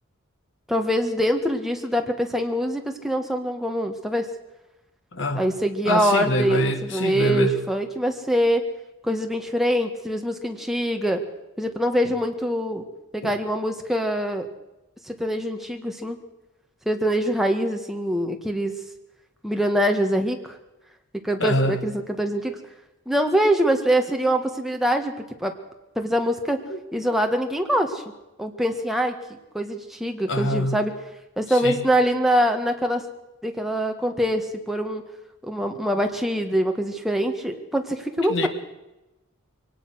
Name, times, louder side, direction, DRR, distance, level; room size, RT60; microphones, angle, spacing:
voice 1, 0.7-4.3 5.3-8.6 9.0-11.2 11.6-12.8 13.1-14.5 15.1-16.2 16.8-18.7 19.4-20.5 21.2-22.6 23.1-25.1 25.4-25.5 25.9-26.6 26.9-28.0 28.4-29.1 29.5-30.9 31.4-33.0 33.4-35.0 35.4-38.5, equal, ahead, 4 dB, 1.6 m, -24 dB
voice 2, 5.1-5.5 5.9-7.6 12.0-12.1 13.2-13.4 21.4-21.8 26.7-26.8 30.3-30.8 31.5-31.8 38.3-38.5, left 1 dB, 60° left, 8 dB, 1.9 m, -25 dB
23.0 x 18.5 x 6.3 m, 0.96 s
head